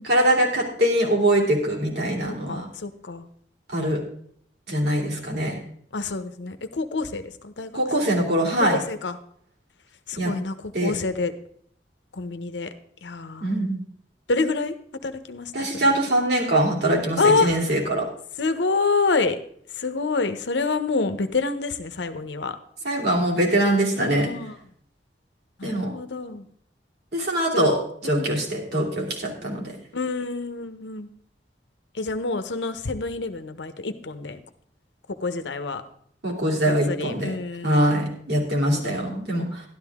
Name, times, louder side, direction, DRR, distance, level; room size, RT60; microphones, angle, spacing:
voice 1, 0.0-2.7 3.7-4.0 4.7-5.6 7.7-8.8 10.2-10.3 10.7-10.9 13.4-13.8 15.5-18.1 22.8-24.3 25.6-25.9 27.1-29.7 36.2-37.3 37.6-39.6, right 1 dB, 65° right, -2 dB, 3.1 m, -23 dB
voice 2, 2.2-3.3 5.9-7.7 8.6-9.2 10.1-11.3 12.1-12.7 13.0-13.5 14.3-14.7 15.0-15.8 17.2-17.5 18.4-19.4 19.8-22.6 24.0-24.6 25.6-26.4 27.5-27.7 28.0-28.3 29.9-31.1 32.0-34.4 35.2-35.8 36.6-38.0 38.4-39.1, left 3 dB, 90° left, 10 dB, 0.9 m, -27 dB
12.0 x 12.0 x 3.6 m, 0.64 s
head